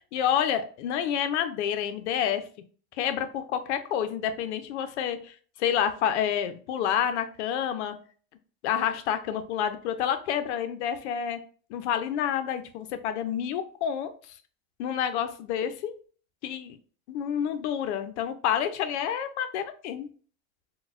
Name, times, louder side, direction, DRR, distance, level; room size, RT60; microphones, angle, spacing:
voice 1, 0.1-2.5 3.0-7.9 8.6-11.4 11.7-14.1 14.8-16.0 16.4-16.8 17.1-20.1, left 9 dB, 85° left, 10 dB, 0.5 m, -29 dB
3.9 x 2.2 x 2.5 m, 0.42 s
supercardioid pair, 135°, 34 cm